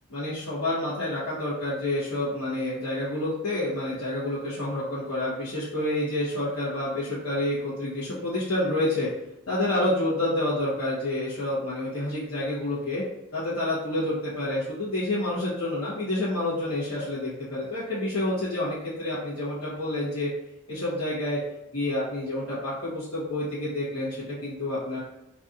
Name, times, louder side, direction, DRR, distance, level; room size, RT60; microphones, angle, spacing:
voice 1, 0.1-9.1 9.5-13.0 13.3-20.3 20.7-21.4 21.7-25.0, left 1 dB, 75° left, -11 dB, 1.3 m, -28 dB
4.0 x 3.3 x 2.6 m, 0.90 s
head